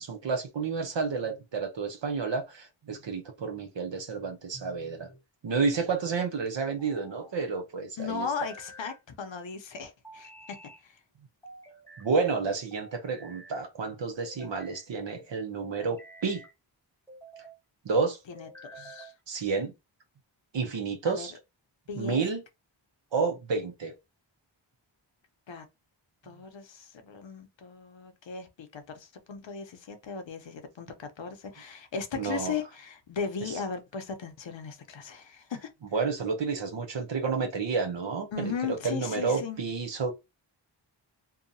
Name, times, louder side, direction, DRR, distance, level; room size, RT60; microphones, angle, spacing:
voice 1, 0.0-5.1 5.4-8.3 12.0-16.4 17.8-18.2 19.3-19.7 20.5-21.3 22.0-22.4 23.1-23.9 32.1-32.5 33.4-33.5 35.9-40.1, right 4 dB, 65° right, 0.7 m, -30 dB
sound 1, 4.5-5.2 6.6-7.4 8.2-9.0 10.0-10.8 11.4-12.1 12.7-13.6 14.2-14.9 15.6-16.5 17.1-17.6 18.4-19.2, right 1 dB, 5° left, 0.8 m, -49 dB
voice 2, 8.0-10.6 10.8-11.0 18.3-19.1 21.0-21.3 21.9-22.2 25.5-25.7 26.2-35.7 38.3-39.6, left 6 dB, 70° left, 0.7 m, -37 dB
2.7 x 2.3 x 2.6 m
wide cardioid pair, 70°, 48 cm